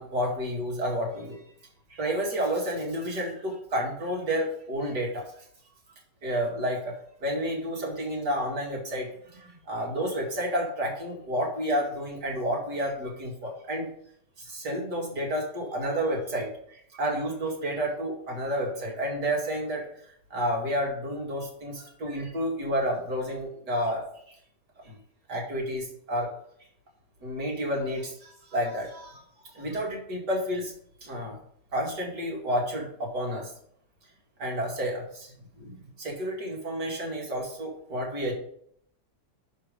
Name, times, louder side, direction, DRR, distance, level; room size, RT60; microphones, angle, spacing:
voice 1, 0.0-1.4 1.9-5.4 6.2-6.9 7.2-13.9 14.4-19.9 20.3-24.4 24.8-25.0 25.3-26.3 27.2-29.2 29.5-30.7 31.0-31.4 31.7-33.5 34.4-38.3, equal, 65° right, -1 dB, 2.8 m, -30 dB
11.5 x 4.5 x 5.0 m, 0.67 s
omnidirectional pair, 1.9 m